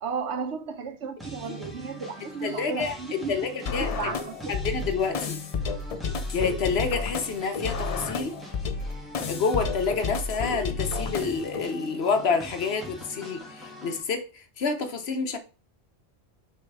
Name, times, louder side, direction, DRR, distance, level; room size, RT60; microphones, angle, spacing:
voice 1, 0.0-3.4 3.6-4.5 5.2-5.3, right 5 dB, 90° right, 1.2 m, -34 dB
sound 1, 1.2-14.0, equal, ahead, 1.6 m, -43 dB
voice 2, 2.2-2.9 3.3-4.1 4.5-5.4 6.3-8.4 9.3-15.4, left 5 dB, 70° left, 1.1 m, -28 dB
sound 2, 3.6-11.6, left 4 dB, 45° left, 0.5 m, -31 dB
6.3 x 3.4 x 4.7 m
omnidirectional pair, 1.1 m